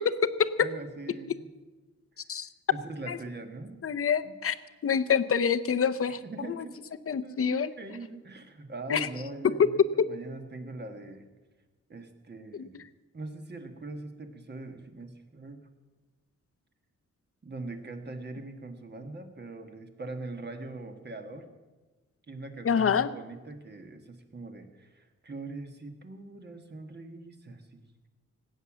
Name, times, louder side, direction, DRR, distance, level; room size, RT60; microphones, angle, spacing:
voice 1, 0.6-1.5 2.7-3.8 4.2-4.4 6.2-6.8 7.2-11.3 11.9-12.8 13.1-15.6 17.4-21.5 22.3-27.8, right 2 dB, 35° right, 5 dB, 1.5 m, -42 dB
voice 2, 3.8-4.5 4.8-6.2 7.1-7.7 8.9-9.1 12.6-12.7 22.6-23.1, left 7 dB, 50° left, 13 dB, 0.7 m, -26 dB
19.0 x 8.9 x 7.3 m, 1.2 s
wide cardioid pair, 175°, 29 cm